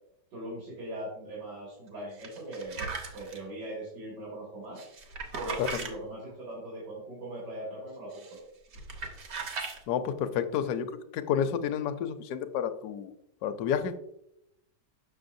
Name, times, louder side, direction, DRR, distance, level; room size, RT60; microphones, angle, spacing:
voice 1, 0.3-2.9 3.1-4.8 5.4-8.4, right 1 dB, 80° right, -5 dB, 2.7 m, -40 dB
sound 1, 2.2-3.4 4.8-5.9 8.1-8.4 8.7-9.8, right 4 dB, 65° right, 1.4 m, -38 dB
voice 2, 9.9-10.9 11.1-13.1 13.4-14.0, left 8 dB, 70° left, 9 dB, 1.1 m, -30 dB
7.1 x 6.1 x 2.6 m, 0.78 s
omnidirectional pair, 1.8 m